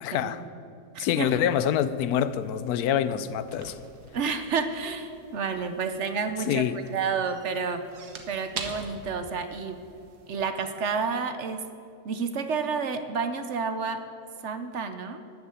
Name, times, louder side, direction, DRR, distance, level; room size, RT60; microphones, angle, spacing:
voice 1, 0.0-0.4 1.0-3.7 6.5-6.8, left 9 dB, 75° left, 1.1 m, -26 dB
voice 2, 0.9-1.3 4.1-6.6 6.9-7.8 8.3-9.8 10.3-11.7 12.0-14.0 14.4-15.2, right 5 dB, 55° right, 0.9 m, -30 dB
sound 1, 1.5-10.4, right 4 dB, 85° right, 1.7 m, -45 dB
13.0 x 6.9 x 9.1 m
omnidirectional pair, 1.6 m